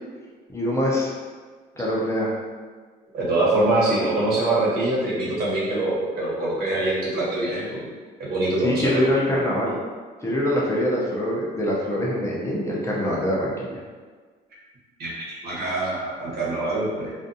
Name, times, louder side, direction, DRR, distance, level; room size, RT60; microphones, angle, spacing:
voice 1, 0.5-1.1 1.8-2.3 8.6-9.8 10.2-13.7, left 1 dB, 15° left, -5 dB, 0.5 m, -24 dB
voice 2, 3.1-7.9 8.3-9.0 15.0-17.1, right 2 dB, 70° right, -7 dB, 1.1 m, -24 dB
2.5 x 2.4 x 2.6 m, 1.5 s
cardioid pair, 110°, 17 cm